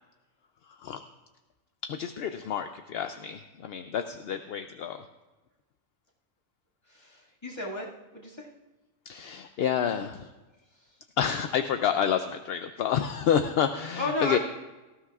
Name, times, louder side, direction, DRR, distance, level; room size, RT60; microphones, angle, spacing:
voice 1, 0.7-1.0 1.8-5.0 9.1-10.3 11.2-14.4, left 8 dB, 65° left, 8 dB, 0.7 m, -29 dB
voice 2, 6.9-8.5 14.0-14.4, left 2 dB, 20° left, -4 dB, 2.0 m, -33 dB
18.5 x 14.5 x 2.4 m, 1.2 s
omnidirectional pair, 1.3 m